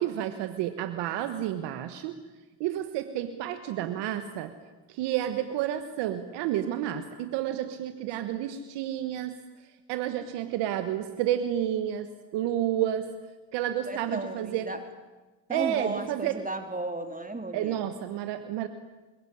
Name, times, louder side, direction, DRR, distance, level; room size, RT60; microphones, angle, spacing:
voice 1, 0.0-2.1 2.6-4.5 4.9-9.3 9.9-13.1 13.5-14.7 15.5-16.4 17.5-18.7, right 11 dB, 90° right, 9 dB, 1.4 m, -30 dB
voice 2, 13.9-14.8 15.5-17.8, right 2 dB, 20° right, 7 dB, 3.5 m, -34 dB
26.5 x 21.5 x 9.9 m, 1.2 s
supercardioid pair, 50°, 41 cm